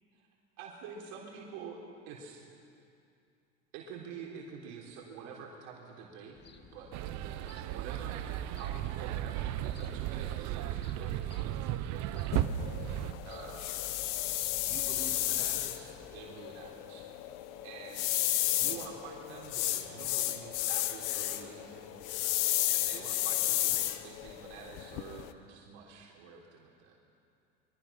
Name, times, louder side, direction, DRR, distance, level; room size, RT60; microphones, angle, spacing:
voice 1, 0.6-2.5 3.7-12.0 12.8-13.8 14.5-17.1 17.6-18.1 18.4-22.0 22.6-26.9, right 6 dB, 65° right, -1 dB, 3.9 m, -47 dB
sound 1, 6.3-16.2, left 3 dB, 25° left, 1.7 m, -52 dB
sound 2, 6.9-13.1, right 13 dB, 50° right, 1.0 m, -35 dB
sound 3, 12.3-25.3, left 15 dB, 55° left, 1.3 m, -33 dB
23.5 x 23.5 x 5.9 m, 2.5 s
hypercardioid pair, 95°, 37 cm